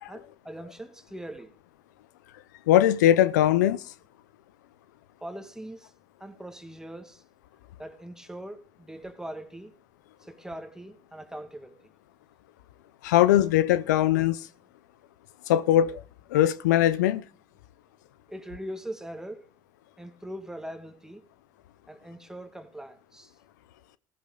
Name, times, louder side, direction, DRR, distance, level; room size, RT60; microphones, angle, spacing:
voice 1, 0.1-1.5 5.2-5.9 6.2-7.2 7.8-9.7 10.2-11.9 18.3-19.4 20.0-21.3 21.9-23.4, right 1 dB, 5° right, 1.9 m, -41 dB
voice 2, 2.7-3.8 13.0-14.5 15.5-16.0 16.3-17.2, left 12 dB, 90° left, 0.7 m, -21 dB
16.0 x 14.5 x 3.9 m
supercardioid pair, 80°, 9 cm